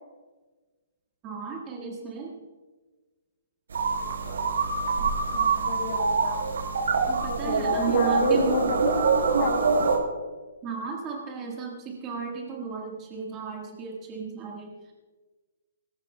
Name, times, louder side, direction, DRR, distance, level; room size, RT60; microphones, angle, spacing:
voice 1, 1.2-2.4 7.1-8.7 10.6-14.9, right 5 dB, 15° right, -1 dB, 1.5 m, -35 dB
sound 1, 3.7-10.0, right 4 dB, 85° right, 5.1 m, -25 dB
voice 2, 5.0-6.5 7.4-10.0, left 6 dB, 35° left, 5 dB, 0.9 m, -31 dB
24.5 x 14.5 x 2.2 m, 1.3 s
hypercardioid pair, 180°, 0 cm